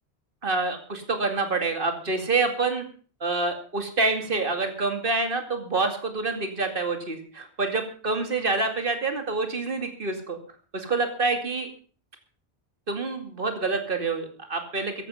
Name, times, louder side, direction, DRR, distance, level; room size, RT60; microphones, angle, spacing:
voice 1, 0.4-2.8 3.2-10.4 10.7-11.7 12.9-15.1, right 3 dB, 55° right, 6 dB, 2.5 m, -27 dB
15.0 x 11.0 x 5.7 m, 0.42 s
omnidirectional pair, 1.1 m